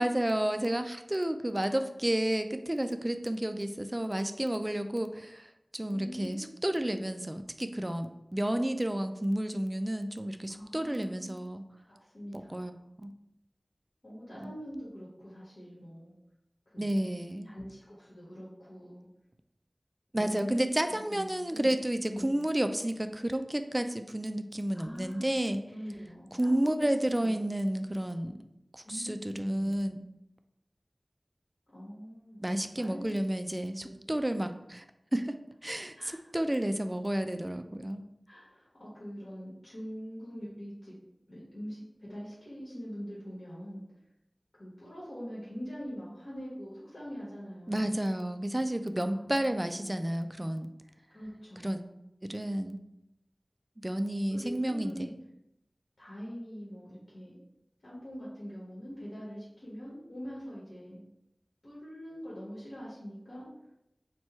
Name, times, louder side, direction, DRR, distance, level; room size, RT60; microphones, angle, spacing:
voice 1, 0.0-11.6 12.5-12.7 13.0-13.1 14.4-14.5 16.8-17.5 20.1-25.6 26.3-28.4 28.7-30.0 32.4-34.8 35.1-35.3 35.6-35.9 36.3-38.0 47.7-50.7 51.6-51.8 52.2-52.8 53.8-55.1, right 1 dB, 25° right, 8 dB, 0.4 m, -31 dB
voice 2, 5.9-6.8 10.5-11.4 12.0-12.9 14.0-16.1 16.7-17.1 17.4-19.1 20.1-20.7 21.1-21.8 22.1-22.3 24.7-26.9 27.2-27.4 28.8-29.9 31.7-32.4 32.8-33.2 33.8-33.9 35.9-36.1 38.3-40.9 41.3-41.8 42.1-43.8 44.6-48.0 49.0-49.7 51.1-51.9 54.3-55.1 56.0-57.3 57.8-61.0 61.6-63.5, equal, 80° left, -8 dB, 1.4 m, -43 dB
4.4 x 2.2 x 4.4 m, 0.85 s
wide cardioid pair, 45°, 0 cm